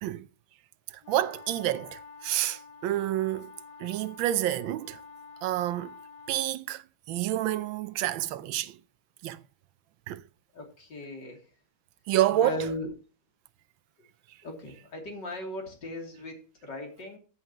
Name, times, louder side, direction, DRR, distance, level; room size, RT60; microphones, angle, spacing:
voice 1, 0.9-3.5 3.8-5.0 5.4-5.9 6.3-6.8 7.1-8.8 9.2-9.4 10.1-10.2 12.1-12.7, right 13 dB, 80° right, 1.4 m, -28 dB
sound 1, 1.0-6.5, left 5 dB, 80° left, 1.5 m, -49 dB
voice 2, 10.5-11.4 12.3-12.9 14.4-17.2, left 1 dB, 60° left, 3.5 m, -37 dB
14.5 x 7.9 x 2.9 m
omnidirectional pair, 2.1 m